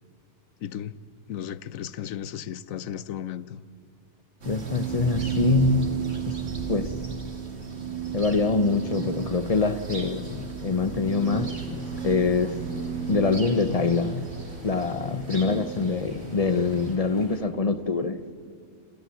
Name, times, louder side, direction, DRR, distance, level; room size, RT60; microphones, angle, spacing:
voice 1, 0.6-1.0 1.3-3.7, left 10 dB, 90° left, 1.1 m, -35 dB
voice 2, 4.4-5.9 6.2-6.4 6.7-6.9 8.1-12.6 13.1-14.3 14.6-18.2, left 4 dB, 35° left, 0.8 m, -25 dB
sound 1, 4.4-16.9, right 6 dB, 55° right, 2.9 m, -33 dB
sound 2, 11.2-17.4, equal, 15° left, 6.9 m, -49 dB
27.0 x 14.5 x 9.2 m
omnidirectional pair, 1.4 m